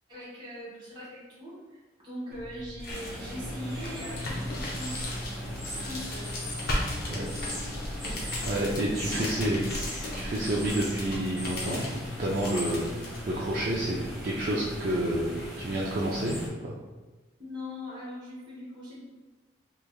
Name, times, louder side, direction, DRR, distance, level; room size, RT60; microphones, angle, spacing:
voice 1, 0.1-6.3 8.9-9.6 17.4-19.0, equal, 25° right, -9 dB, 1.5 m, -41 dB
sound 1, 2.3-13.2, left 1 dB, 55° left, 0.7 m, -37 dB
sound 2, 2.8-16.5, left 1 dB, ahead, 0.8 m, -38 dB
voice 2, 8.4-9.7 10.1-14.0 14.2-16.4 16.6-16.7, right 1 dB, 50° right, -5 dB, 0.4 m, -29 dB
3.3 x 3.2 x 2.3 m, 1.2 s
head